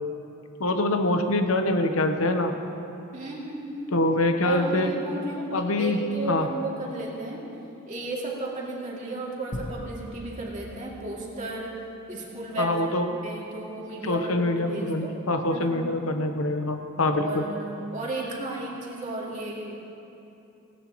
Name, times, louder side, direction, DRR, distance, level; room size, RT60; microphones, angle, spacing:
voice 1, 0.6-2.5 3.9-4.9 5.5-6.0 6.3-6.5 12.6-13.1 14.0-17.4, left 2 dB, 70° left, 5 dB, 1.0 m, -24 dB
voice 2, 3.1-3.9 4.4-5.5 5.8-7.5 7.9-11.8 12.1-12.8 13.2-15.1 15.5-15.8 17.1-19.8, right 2 dB, 35° right, -4 dB, 2.6 m, -34 dB
sound 1, 9.5-12.1, left 1 dB, 50° left, 1.1 m, -40 dB
18.0 x 17.5 x 3.1 m, 2.8 s
head